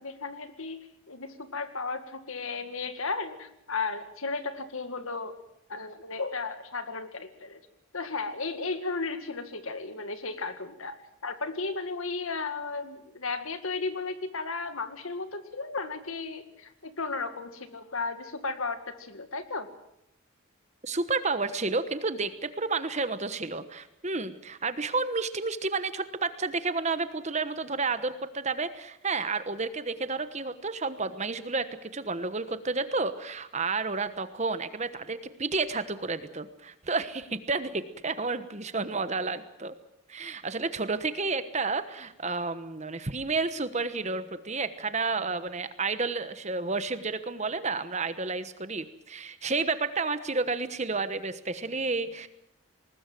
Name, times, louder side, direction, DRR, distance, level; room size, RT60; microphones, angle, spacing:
voice 1, 0.0-5.4 5.7-7.6 7.9-11.0 11.2-19.7, left 3 dB, 75° left, 9 dB, 2.0 m, -34 dB
voice 2, 20.8-39.7 40.1-52.3, right 4 dB, 30° right, 12 dB, 1.1 m, -31 dB
20.0 x 20.0 x 7.7 m, 0.83 s
head